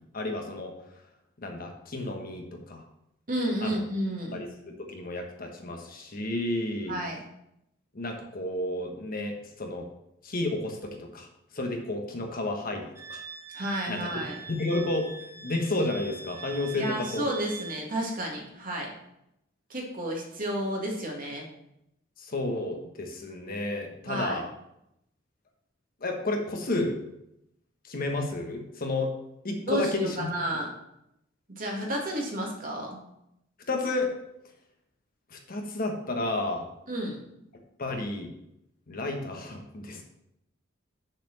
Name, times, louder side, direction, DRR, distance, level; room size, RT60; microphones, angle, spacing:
voice 1, 0.1-0.7 1.4-2.8 3.6-3.8 4.3-6.9 7.9-9.9 10.2-11.3 11.5-13.2 13.9-14.1 14.5-15.1 15.4-17.3 22.2-24.4 26.0-27.0 27.8-29.1 29.4-30.3 33.7-34.1 35.3-36.7 37.8-38.3 38.9-40.0, left 2 dB, 50° left, 3 dB, 1.1 m, -31 dB
voice 2, 3.3-4.4 6.9-7.2 13.5-14.4 16.7-18.9 19.7-21.5 24.0-24.4 29.7-30.7 31.5-33.0 36.9-37.2, right 1 dB, 45° right, -1 dB, 2.0 m, -31 dB
Wind instrument woodwind instrument, 13.0-17.9, right 5 dB, 15° right, 0.7 m, -43 dB
6.6 x 4.2 x 6.6 m, 0.81 s
head